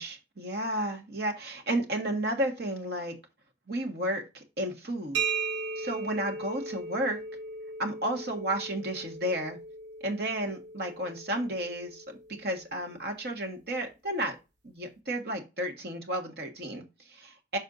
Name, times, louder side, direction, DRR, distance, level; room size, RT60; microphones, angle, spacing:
voice 1, 0.0-3.1 3.7-5.2 5.8-7.2 7.8-9.6 10.0-14.4 14.6-17.6, right 1 dB, 55° right, 3 dB, 1.5 m, -32 dB
sound 1, 5.1-12.7, right 4 dB, 75° right, 1.2 m, -37 dB
6.3 x 4.3 x 3.9 m, 0.27 s
head